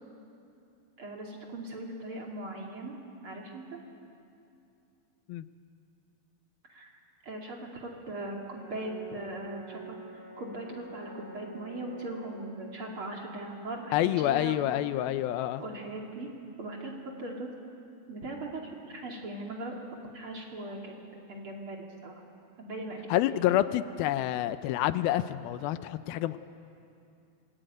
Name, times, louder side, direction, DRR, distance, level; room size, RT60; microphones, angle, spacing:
voice 1, 1.0-3.0 3.2-3.8 6.7-6.9 7.2-10.0 10.4-14.6 15.6-16.3 16.6-17.5 18.1-19.7 20.1-22.1 22.6-23.1 23.3-23.6, right 2 dB, 40° right, 0 dB, 3.1 m, -39 dB
Brass instrument, 8.1-12.4, right 2 dB, 65° right, 9.5 m, -47 dB
voice 2, 13.9-15.6 23.1-26.4, left 13 dB, 85° left, 12 dB, 2.6 m, -28 dB
26.0 x 21.5 x 9.2 m, 2.6 s
omnidirectional pair, 4.2 m